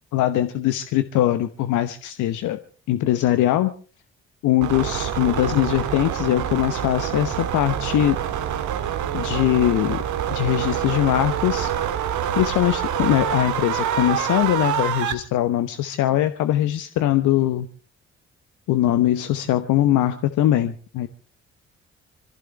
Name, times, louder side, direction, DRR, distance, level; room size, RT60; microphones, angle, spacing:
voice 1, 0.1-2.6 2.9-3.7 4.4-8.2 9.1-10.0 10.3-11.7 12.3-17.7 18.7-21.1, left 13 dB, 65° left, 11 dB, 1.0 m, -21 dB
sound 1, 4.6-15.1, right 9 dB, 65° right, 1.7 m, -26 dB
26.0 x 15.0 x 3.3 m, 0.37 s
hypercardioid pair, 45°, 32 cm